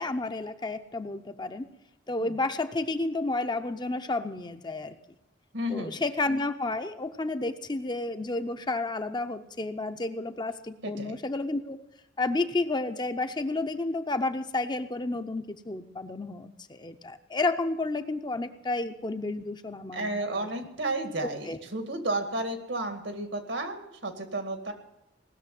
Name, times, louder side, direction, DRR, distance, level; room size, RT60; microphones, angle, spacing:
voice 1, 0.0-1.7 2.1-5.0 5.7-11.8 12.2-20.5 21.2-21.6, left 2 dB, 25° left, 8 dB, 0.7 m, -31 dB
voice 2, 5.5-6.0 10.8-11.2 19.9-24.7, right 1 dB, 80° right, 6 dB, 2.1 m, -32 dB
18.5 x 6.8 x 9.2 m, 0.91 s
head